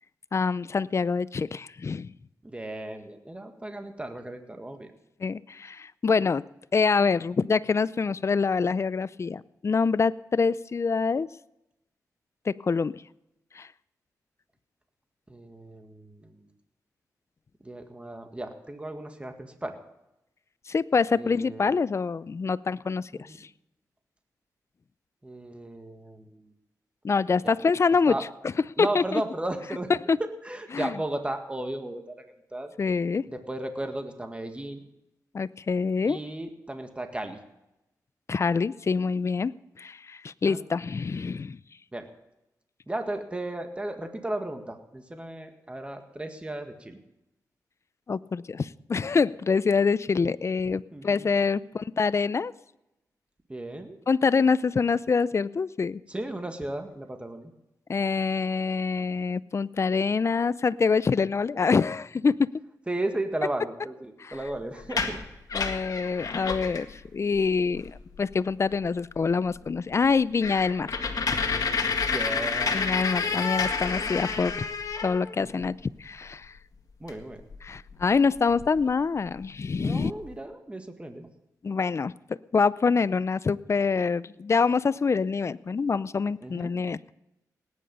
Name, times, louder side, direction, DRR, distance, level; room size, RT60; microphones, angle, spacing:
voice 1, 0.3-2.1 5.2-6.4 6.7-11.3 12.5-13.0 13.5-13.7 20.7-23.3 27.0-28.1 28.8-29.2 30.1-30.2 30.7-30.9 32.8-33.2 35.3-36.2 38.3-41.6 48.1-52.5 54.1-56.0 57.9-62.5 64.2-64.4 65.5-70.9 72.7-74.7 75.0-76.5 77.6-80.1 81.6-82.1 82.5-87.0, left 5 dB, 45° left, 18 dB, 0.5 m, -25 dB
voice 2, 2.4-4.9 15.3-16.5 17.6-19.8 21.2-21.7 23.1-23.4 25.2-26.5 27.4-27.5 28.1-28.2 28.8-29.9 30.2-32.2 32.5-32.7 33.3-34.9 36.1-37.4 40.4-40.7 41.9-42.1 42.9-47.0 50.9-51.3 53.5-54.0 56.1-57.5 62.9-65.2 72.1-72.8 73.2-73.4 75.4-75.7 77.0-77.4 79.8-81.3 86.4-86.7, right 1 dB, 15° right, 5 dB, 1.9 m, -35 dB
sound 1, 64.8-66.9 67.4-67.5 67.7-68.2 68.7-68.8 69.2-69.3 69.6-69.7 70.0-75.7 77.1-77.2 77.5-78.8 79.4-79.5 79.7-80.3, left 5 dB, 65° left, 1.9 m, -29 dB
18.0 x 10.0 x 5.5 m, 0.89 s
cardioid pair, 70°, 7 cm